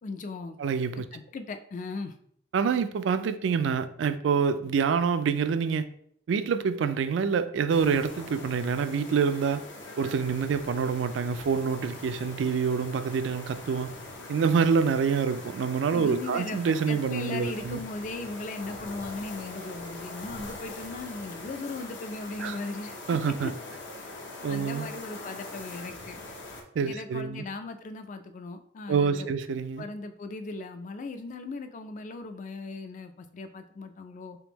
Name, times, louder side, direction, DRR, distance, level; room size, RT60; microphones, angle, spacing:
voice 1, 0.0-0.6 0.9-2.1 15.9-23.0 23.3-23.5 24.5-26.2 26.9-29.3 29.8-34.4, left 3 dB, 40° left, 0.3 m, -38 dB
voice 2, 0.6-1.1 2.5-5.9 6.3-9.6 10.0-13.9 14.3-17.8 22.4-22.6 23.1-23.5 24.4-24.9 26.8-27.4 28.9-29.9, right 6 dB, 75° right, 0.3 m, -26 dB
sound 1, 7.7-26.6, left 2 dB, 75° left, 0.7 m, -42 dB
3.5 x 3.3 x 3.0 m
head